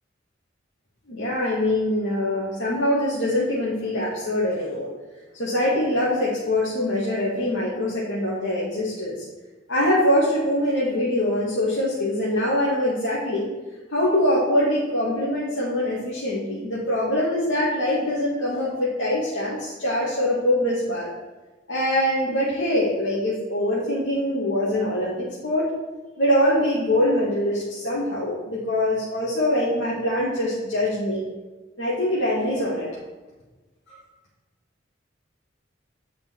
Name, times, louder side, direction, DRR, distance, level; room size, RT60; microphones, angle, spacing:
voice 1, 1.1-4.9 5.4-9.2 9.7-13.5 13.9-21.1 21.7-25.7 26.2-31.2 31.8-32.9, left 1 dB, 70° left, -8 dB, 1.8 m, -23 dB
8.3 x 5.2 x 4.5 m, 1.2 s
head